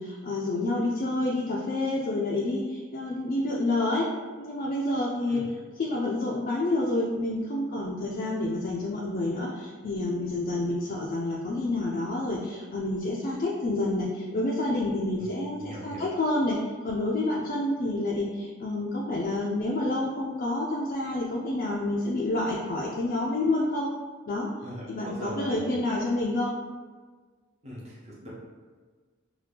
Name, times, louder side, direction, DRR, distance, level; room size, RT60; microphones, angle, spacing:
voice 1, 0.0-4.1 4.4-5.4 5.8-16.6 16.8-23.9 24.3-24.5 24.9-26.5, left 2 dB, 45° left, -4 dB, 0.3 m, -28 dB
voice 2, 15.6-16.0 24.6-25.8 27.6-28.3, equal, 35° right, -6 dB, 0.8 m, -41 dB
2.8 x 2.3 x 3.3 m, 1.4 s
head